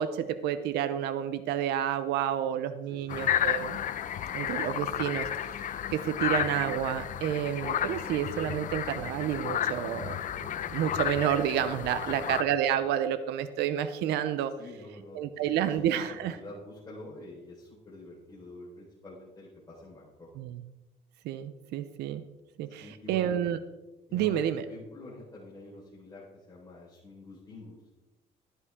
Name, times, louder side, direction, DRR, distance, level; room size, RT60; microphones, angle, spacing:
voice 1, 0.0-3.8 4.3-5.5 5.9-10.2 10.7-14.5 15.1-16.3 20.4-20.6 21.2-22.2 22.6-23.6 24.1-24.6, right 10 dB, 80° right, 12 dB, 0.7 m, -30 dB
voice 2, 2.9-3.2 12.1-12.4 14.6-20.3 22.8-23.3 24.1-27.8, left 2 dB, 20° left, -8 dB, 4.4 m, -47 dB
sound 1, 3.1-12.4, left 10 dB, 50° left, 0.7 m, -32 dB
12.5 x 11.0 x 3.7 m, 1.0 s
cardioid pair, 110°, 17 cm